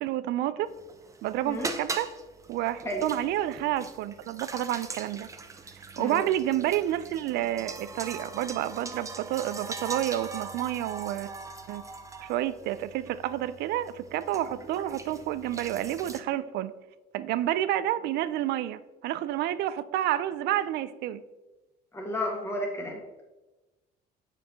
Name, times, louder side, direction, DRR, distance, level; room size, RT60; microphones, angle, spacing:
voice 1, 0.0-0.7 1.2-2.1 2.5-5.3 6.0-11.3 11.7-11.8 12.2-16.7 17.1-21.2, right 13 dB, 75° right, 0.4 m, -29 dB
sound 1, 0.7-16.2, right 4 dB, 20° right, 0.5 m, -41 dB
voice 2, 21.9-23.0, left 1 dB, 15° left, 1.7 m, -32 dB
6.6 x 4.7 x 3.4 m
cardioid pair, 110°, 17 cm